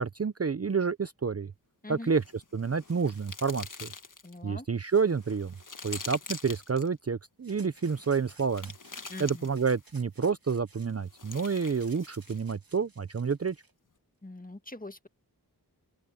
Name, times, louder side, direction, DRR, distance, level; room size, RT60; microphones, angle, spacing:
voice 1, 0.0-1.5 1.9-3.9 4.4-5.5 5.8-8.7 9.2-13.5, right 5 dB, 40° right, 0.6 m, -29 dB
sound 1, 2.1-4.4 4.9-6.9 7.8-9.9 10.9-12.5, left 4 dB, 50° left, 1.4 m, -45 dB
sound 2, 2.6-3.9 4.9-6.5 7.4-9.1 9.5-13.7, right 3 dB, 60° right, 2.9 m, -58 dB
voice 2, 4.2-4.7 9.1-9.5 14.2-15.1, left 2 dB, 20° left, 1.7 m, -42 dB
open air
wide cardioid pair, 55°, 39 cm